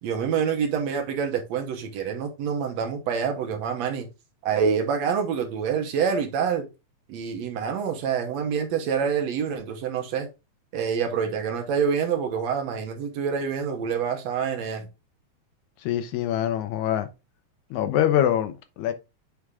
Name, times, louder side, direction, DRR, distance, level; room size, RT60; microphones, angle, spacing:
voice 1, 0.0-4.1 4.4-6.7 7.1-10.3 10.7-14.9, right 7 dB, 70° right, 2.0 m, -26 dB
voice 2, 15.8-17.1 17.7-18.9, left 10 dB, 80° left, 2.0 m, -24 dB
8.0 x 3.5 x 3.5 m
omnidirectional pair, 3.5 m